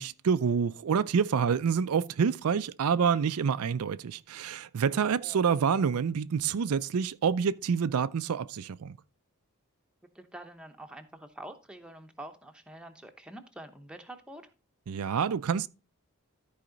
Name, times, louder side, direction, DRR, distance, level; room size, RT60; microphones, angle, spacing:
voice 1, 0.0-9.0 14.9-15.7, right 6 dB, 85° right, 0.4 m, -27 dB
voice 2, 10.1-14.5, right 1 dB, 5° right, 0.9 m, -46 dB
13.0 x 4.7 x 3.9 m
head